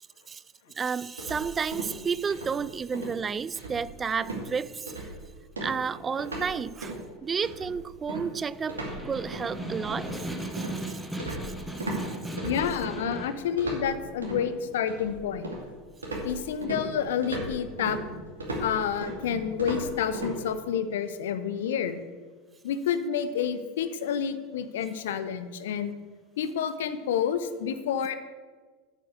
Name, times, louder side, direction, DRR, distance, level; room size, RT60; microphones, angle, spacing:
voice 1, 0.8-5.0 5.6-11.0 11.4-12.4, right 6 dB, 25° right, 0.3 m, -32 dB
sound 1, 1.2-2.0 2.3-2.6 2.9-3.2 3.6-4.0 4.2-4.5 4.9-5.2 5.6-6.5 6.8-7.0 7.4-12.0 12.4-13.2 13.6-14.4 14.9-15.7 16.0-20.3, right 1 dB, 80° right, 2.4 m, -36 dB
Snare drum, 8.6-13.5, right 1 dB, ahead, 1.6 m, -37 dB
voice 2, 12.4-15.5 16.2-18.0 18.6-22.0 22.6-25.9 26.4-28.2, left 8 dB, 65° left, 0.8 m, -29 dB
8.3 x 7.5 x 7.9 m
figure-of-eight pair, 80°, 0 cm